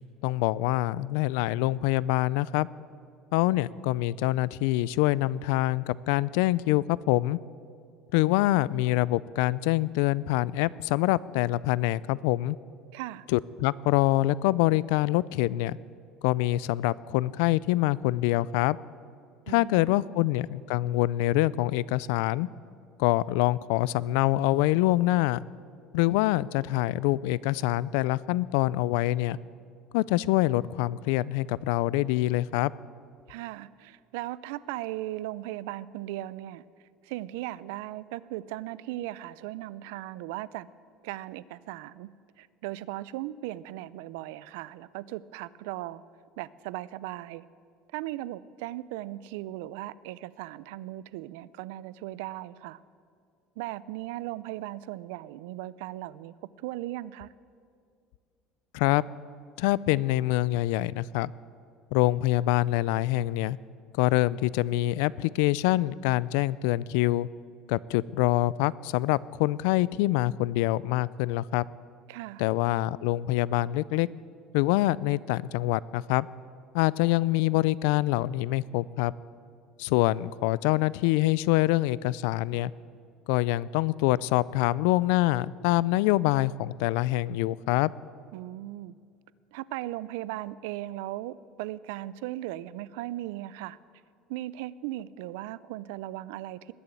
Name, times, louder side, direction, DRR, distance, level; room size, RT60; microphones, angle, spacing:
voice 1, 0.2-2.7 3.3-7.4 8.1-12.6 13.3-15.8 16.2-18.8 19.5-22.5 23.0-25.4 25.9-29.4 29.9-32.7 58.7-59.0 59.6-61.3 61.9-63.6 64.0-67.3 67.7-71.7 72.4-74.1 74.5-76.3 76.7-79.1 79.8-82.7 83.3-87.9, left 17 dB, 75° left, 21 dB, 0.3 m, -25 dB
voice 2, 12.9-13.3 19.5-20.1 33.3-36.6 37.0-40.7 41.0-42.1 42.4-46.0 46.4-47.4 47.9-52.8 53.6-57.3 72.1-72.4 88.3-88.9 89.5-93.8 94.3-96.7, right 15 dB, 85° right, 19 dB, 0.4 m, -37 dB
20.0 x 7.0 x 9.1 m, 2.3 s
cardioid pair, 170°, 0 cm